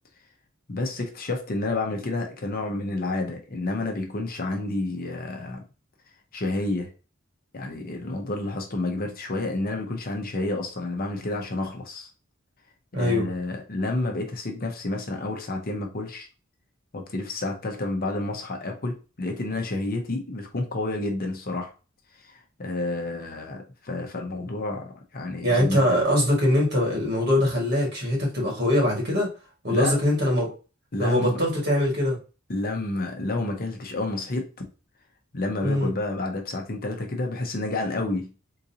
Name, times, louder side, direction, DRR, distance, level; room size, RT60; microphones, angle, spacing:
voice 1, 0.7-5.6 6.3-6.9 7.5-12.1 12.9-16.3 16.9-21.7 22.2-25.8 29.7-30.0 30.9-31.4 32.5-34.5 35.3-38.3, left 2 dB, 45° left, 0.7 m, -30 dB
voice 2, 12.9-13.3 25.4-29.3 29.6-30.5 31.0-32.2 35.6-35.9, left 1 dB, 50° right, 1.8 m, -22 dB
3.8 x 2.6 x 2.7 m
head